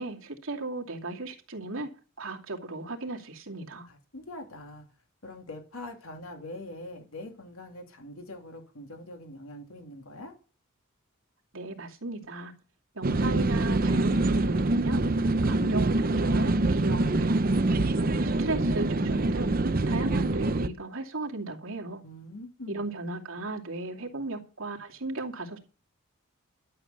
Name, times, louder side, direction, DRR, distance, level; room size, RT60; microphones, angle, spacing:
voice 1, 0.0-1.9 2.2-3.9 11.5-12.5 12.9-17.4 17.7-19.5 19.9-22.0 22.7-25.6, right 2 dB, 70° right, 2.5 m, -36 dB
voice 2, 3.9-4.9 5.2-10.3 22.0-22.8, left 1 dB, 75° left, 2.9 m, -43 dB
sound 1, 13.0-20.7, right 2 dB, 40° right, 0.7 m, -25 dB
12.5 x 7.2 x 6.7 m
head